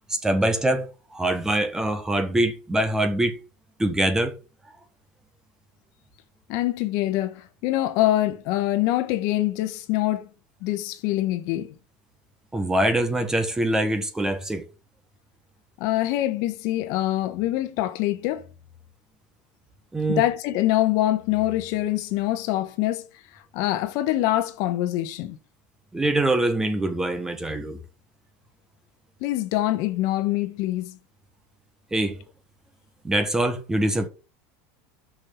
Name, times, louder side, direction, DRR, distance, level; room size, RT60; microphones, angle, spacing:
voice 1, 0.1-3.4 3.8-4.4 12.5-14.7 19.9-20.2 25.9-27.8 31.9-32.2 33.0-34.1, right 1 dB, 10° right, 1.4 m, -24 dB
voice 2, 6.5-10.3 10.6-11.7 15.8-18.4 20.1-23.1 23.3-25.4 29.2-31.0, left 15 dB, 55° left, 1.2 m, -24 dB
6.4 x 5.9 x 6.7 m
supercardioid pair, 150°, 7 cm